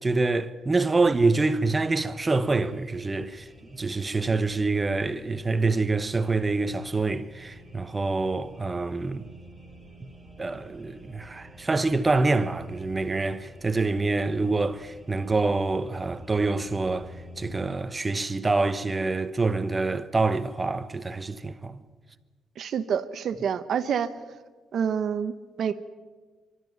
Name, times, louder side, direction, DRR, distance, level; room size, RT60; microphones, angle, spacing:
voice 1, 0.0-9.2 10.4-21.8, right 3 dB, 20° right, 0.9 m, -26 dB
sound 1, 1.0-17.6, equal, 5° left, 4.2 m, -49 dB
voice 2, 22.6-24.1 24.7-25.7, right 7 dB, 60° right, 0.9 m, -27 dB
24.5 x 13.0 x 9.3 m
cardioid pair, 115°, 0 cm